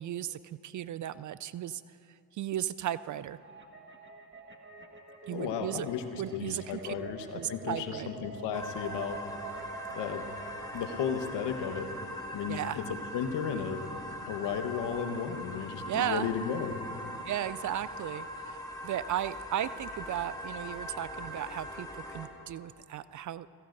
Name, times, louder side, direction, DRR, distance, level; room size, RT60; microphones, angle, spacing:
voice 1, 0.0-1.8 2.1-3.4 5.3-5.9 6.1-6.9 7.3-8.1 12.5-12.8 15.9-16.3 17.3-23.5, right 12 dB, 45° right, 16 dB, 0.4 m, -35 dB
sound 1, 3.3-11.5, right 4 dB, 25° right, 1.7 m, -47 dB
voice 2, 5.3-9.2 9.9-10.3 10.7-11.9 12.3-12.8 13.1-13.8 14.3-16.8, left 7 dB, 65° left, 7 dB, 1.4 m, -34 dB
sound 2, 8.5-22.3, equal, 10° left, 2.3 m, -41 dB
30.0 x 16.5 x 2.7 m, 2.6 s
hypercardioid pair, 50°, 45 cm